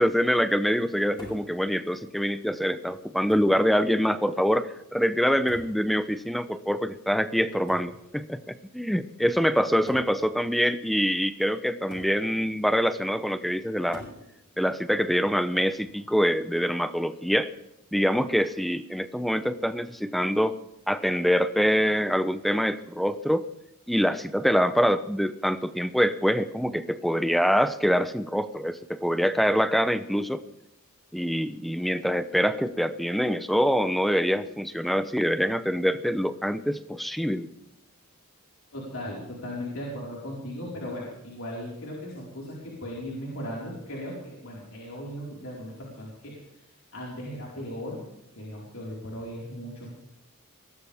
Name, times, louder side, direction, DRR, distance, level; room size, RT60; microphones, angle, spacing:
voice 1, 0.0-14.0 14.6-17.5 17.9-20.6 20.9-23.4 23.9-30.4 31.1-37.5, equal, ahead, 12 dB, 0.7 m, -25 dB
sound 1, 1.2-1.5 2.6-2.7 3.3-3.7 5.5-5.8 7.7-8.0 9.0-9.1 9.9-10.2 11.9-12.2 13.9-14.2 15.8-16.2, equal, 20° left, 6.8 m, -44 dB
voice 2, 38.7-46.6 46.9-48.0 48.3-49.9, equal, 65° left, -4 dB, 4.8 m, -37 dB
22.5 x 17.5 x 3.6 m, 0.87 s
head